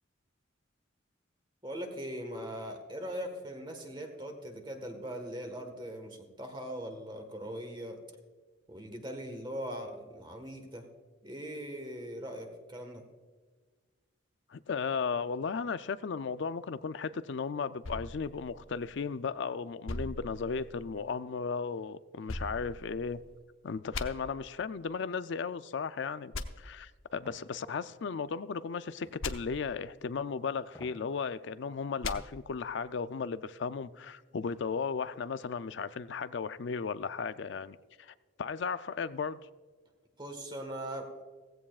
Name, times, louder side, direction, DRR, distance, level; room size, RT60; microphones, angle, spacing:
voice 1, 1.6-8.0 8.7-10.9 11.2-13.0 40.2-41.1, equal, 20° right, 1.5 m, -40 dB
voice 2, 14.5-23.2 23.6-26.3 26.6-39.4, left 5 dB, 60° left, 0.4 m, -35 dB
Rubber band, 17.8-19.3 19.9-21.1 22.3-23.4 23.9-24.0 26.3-26.4 29.2-29.3 32.0-32.2, left 3 dB, 90° left, 0.8 m, -40 dB
sound 1, 27.3-27.5 29.0-29.3 30.7-31.1 31.5-31.6, left 1 dB, 15° left, 1.7 m, -52 dB
16.5 x 15.5 x 2.4 m
head